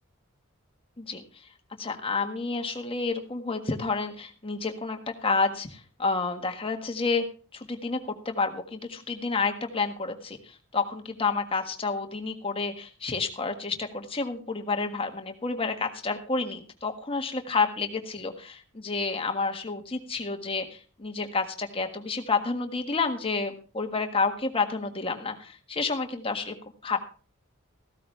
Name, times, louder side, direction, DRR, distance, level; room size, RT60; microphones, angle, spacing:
voice 1, 1.8-7.2 7.5-26.5 26.8-27.0, left 4 dB, 25° left, 5 dB, 1.6 m, -30 dB
15.0 x 13.0 x 3.3 m, 0.37 s
head